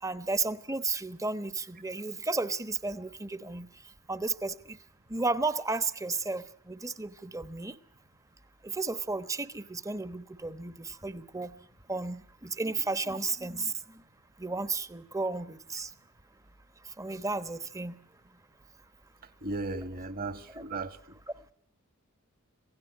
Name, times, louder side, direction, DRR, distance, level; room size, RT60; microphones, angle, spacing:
voice 1, 0.0-3.7 4.1-4.8 5.1-7.8 8.6-11.5 11.9-14.0 14.4-15.9 17.0-18.0 20.5-20.6, right 3 dB, 15° right, 14 dB, 1.1 m, -33 dB
voice 2, 19.4-21.2, right 3 dB, 45° right, 12 dB, 1.9 m, -36 dB
27.0 x 16.5 x 9.6 m, 0.64 s
head